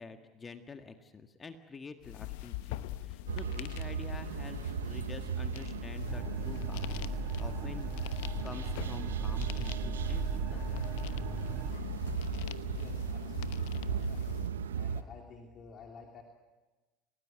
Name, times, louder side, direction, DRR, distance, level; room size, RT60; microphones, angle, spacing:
voice 1, 0.0-7.0 7.4-7.9 8.4-10.8, left 4 dB, 25° left, 7 dB, 1.8 m, -48 dB
sound 1, 2.0-14.5, left 16 dB, 65° left, 0.9 m, -41 dB
sound 2, 3.3-15.0, right 8 dB, 80° right, 1.0 m, -37 dB
sound 3, 6.1-11.7, right 6 dB, 30° right, 0.7 m, -39 dB
voice 2, 12.7-14.3 14.7-16.2, left 5 dB, 45° left, 2 dB, 3.0 m, -52 dB
28.5 x 18.5 x 7.7 m, 1.2 s
hypercardioid pair, 70°, 0 cm